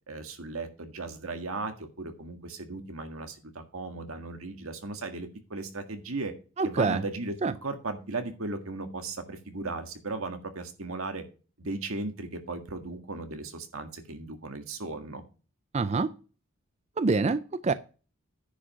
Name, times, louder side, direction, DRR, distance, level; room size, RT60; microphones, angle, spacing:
voice 1, 0.1-6.3 6.6-7.3 7.6-11.2 11.6-15.2, right 3 dB, 85° right, 1.8 m, -36 dB
voice 2, 6.6-7.0 7.4-7.5 15.7-16.1 17.0-17.7, right 4 dB, 30° right, 0.4 m, -26 dB
10.0 x 5.1 x 5.8 m
head